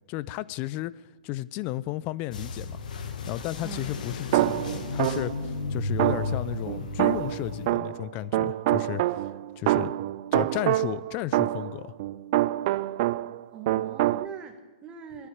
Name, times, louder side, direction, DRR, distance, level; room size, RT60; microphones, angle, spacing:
voice 1, 0.1-2.8 3.3-9.2 9.6-9.9 10.3-11.9, left 15 dB, 30° left, 0.4 m, -33 dB
sound 1, 2.3-7.7, left 3 dB, 70° left, 1.7 m, -34 dB
voice 2, 3.6-4.0 13.5-15.3, right 7 dB, 20° right, 1.5 m, -41 dB
sound 2, 4.3-5.5 6.0-13.4 13.7-14.3, right 16 dB, 45° right, 0.3 m, -26 dB
11.0 x 9.6 x 8.6 m
hypercardioid pair, 140°, 5 cm